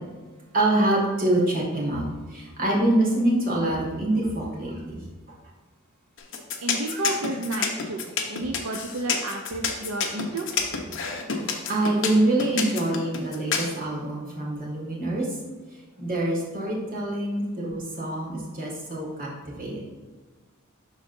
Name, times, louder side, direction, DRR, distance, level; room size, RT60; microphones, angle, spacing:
voice 1, 0.5-2.0 2.3-5.0 6.9-7.0 11.6-15.3 16.0-19.3 19.6-19.8, right 1 dB, 45° right, -3 dB, 2.0 m, -25 dB
sound 1, 6.2-13.7, left 6 dB, 60° left, 0.9 m, -28 dB
voice 2, 6.6-8.0 8.3-10.5, right 2 dB, 70° right, 2 dB, 0.6 m, -31 dB
12.0 x 4.0 x 2.7 m, 1.3 s
head